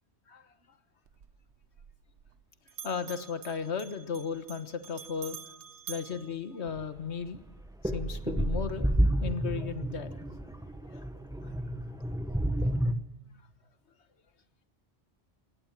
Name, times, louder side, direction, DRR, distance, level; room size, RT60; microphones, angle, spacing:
Bell, 1.1-2.4 2.7-7.2, right 8 dB, 90° right, 1.3 m, -48 dB
voice 1, 2.8-5.4 5.9-7.4 7.8-8.9 9.2-10.1 10.8-11.1, left 6 dB, 75° left, 10 dB, 1.6 m, -35 dB
sound 1, 6.7-6.8 7.3-12.9, right 1 dB, 5° right, 1.0 m, -30 dB
20.5 x 18.0 x 7.4 m, 1.0 s
omnidirectional pair, 1.1 m